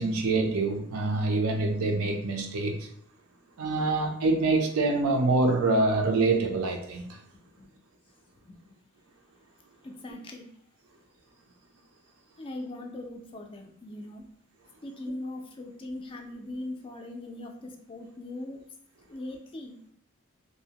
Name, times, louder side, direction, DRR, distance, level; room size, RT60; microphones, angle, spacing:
voice 1, 0.0-2.8 3.6-7.0, right 3 dB, 80° right, 0.5 m, -25 dB
voice 2, 9.8-10.5 12.4-14.2 14.8-18.6 19.1-19.8, left 1 dB, 25° left, 0.3 m, -40 dB
2.6 x 2.0 x 2.8 m
head